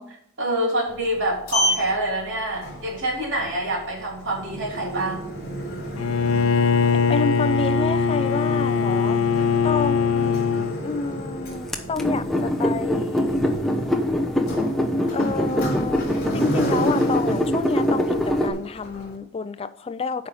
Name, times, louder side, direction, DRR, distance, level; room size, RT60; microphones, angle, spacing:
voice 1, 0.0-5.2, right 1 dB, 65° right, 3.2 m, -26 dB
Sliding door, 0.9-19.2, equal, 50° left, 3.6 m, -33 dB
Bowed string instrument, 6.0-10.8, left 5 dB, 85° left, 0.6 m, -21 dB
voice 2, 7.1-9.2 9.6-10.4 10.8-13.4 15.1-20.3, left 4 dB, 30° left, 0.3 m, -29 dB
sound 1, 11.7-18.5, equal, ahead, 0.9 m, -23 dB
8.7 x 5.5 x 5.5 m
head